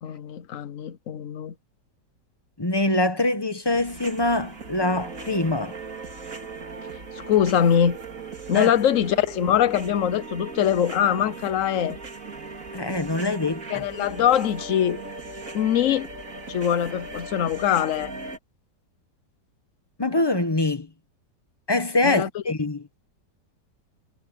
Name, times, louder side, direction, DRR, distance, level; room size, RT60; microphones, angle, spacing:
voice 1, 0.0-1.5 7.3-8.0 8.5-12.0 13.7-15.0 15.5-16.1 16.5-18.1 22.0-22.3, left 9 dB, 55° left, 1.1 m, -22 dB
voice 2, 2.6-5.8 8.5-8.7 12.7-13.9 20.0-20.9 21.7-22.9, left 2 dB, 15° left, 1.0 m, -24 dB
sound 1, 3.6-18.4, right 3 dB, 50° right, 3.2 m, -38 dB
omnidirectional pair, 1.9 m